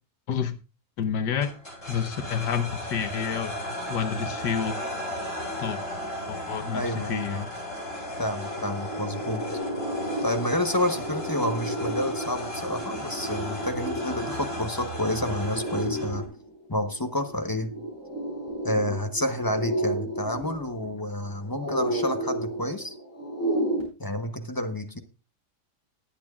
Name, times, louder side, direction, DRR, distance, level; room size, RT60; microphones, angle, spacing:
voice 1, 1.0-1.5 1.9-3.5 3.9-4.8 5.6-5.8 6.3-7.5, left 7 dB, 85° left, 10 dB, 1.5 m, -29 dB
sound 1, 1.4-16.2, left 1 dB, 45° left, 8.6 m, -35 dB
voice 2, 6.7-7.4 8.2-9.5 10.2-16.3 16.7-17.7 18.6-22.9 24.0-25.0, left 1 dB, 20° left, 6 dB, 0.6 m, -29 dB
sound 2, 7.2-7.3 7.6-23.8, right 1 dB, 45° right, 8.1 m, -33 dB
20.0 x 8.7 x 2.4 m, 0.30 s
omnidirectional pair, 1.8 m